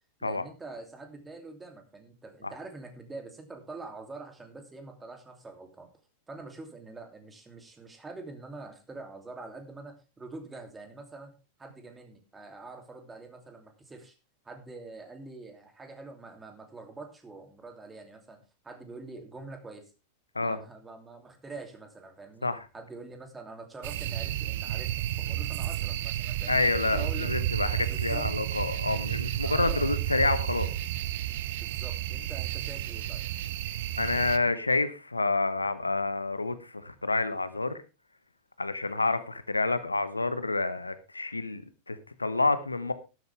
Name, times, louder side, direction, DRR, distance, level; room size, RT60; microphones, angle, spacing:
voice 1, 0.2-5.9 6.3-14.1 14.4-19.9 20.3-22.5 22.7-24.9 25.2-27.4 27.6-28.3 29.4-30.0 31.6-33.3, right 3 dB, 15° right, 6 dB, 2.7 m, -45 dB
sound 1, 23.8-34.4, right 12 dB, 55° right, 0.7 m, -31 dB
voice 2, 26.5-30.7 34.0-37.8 38.6-42.9, left 3 dB, 80° left, 13 dB, 1.0 m, -28 dB
12.5 x 12.5 x 3.4 m, 0.29 s
figure-of-eight pair, 90°, 0 cm